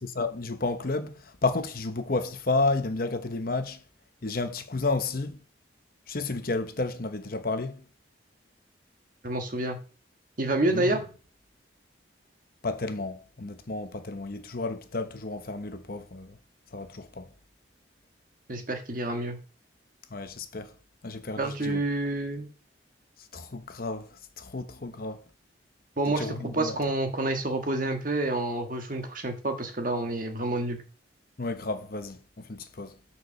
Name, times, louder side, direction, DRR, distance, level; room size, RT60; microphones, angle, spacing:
voice 1, 0.2-3.8 4.2-5.3 6.1-7.8 10.7-10.9 12.6-16.3 16.7-17.2 20.1-20.7 21.0-21.8 23.3-24.1 24.4-25.2 26.2-26.8 31.4-32.2 32.5-32.9, left 3 dB, 50° left, 0.9 m, -31 dB
voice 2, 9.2-9.8 10.4-11.0 18.5-19.4 21.4-22.5 26.0-30.8, right 2 dB, 45° right, 1.6 m, -28 dB
6.6 x 4.8 x 6.7 m
head